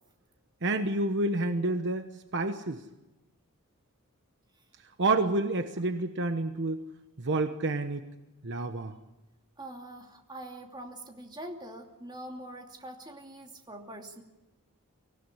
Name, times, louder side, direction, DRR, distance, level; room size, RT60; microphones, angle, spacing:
voice 1, 0.6-2.8 5.0-6.8 7.2-8.1 8.4-8.9, right 2 dB, 55° right, 7 dB, 1.1 m, -29 dB
voice 2, 9.6-14.2, right 1 dB, 20° right, 2 dB, 2.7 m, -44 dB
25.0 x 16.0 x 9.8 m, 1.0 s
head